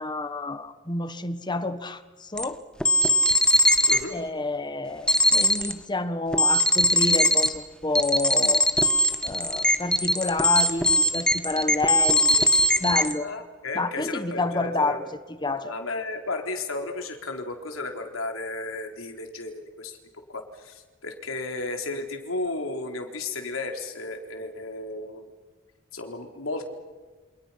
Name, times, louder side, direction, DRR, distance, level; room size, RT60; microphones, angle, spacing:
voice 1, 0.0-2.6 3.8-8.7 9.2-12.5 12.8-13.3 13.7-15.1 15.4-15.7, left 2 dB, 20° left, 11 dB, 1.4 m, -29 dB
sound 1, 2.4-2.5 2.8-4.0 5.1-5.7 6.3-7.5 8.0-13.1, left 1 dB, 5° left, 1.5 m, -20 dB
voice 2, 13.2-15.1 15.6-20.0 20.3-25.3 25.9-26.7, left 2 dB, 85° left, 3 dB, 3.9 m, -34 dB
29.0 x 27.5 x 5.8 m, 1.4 s
head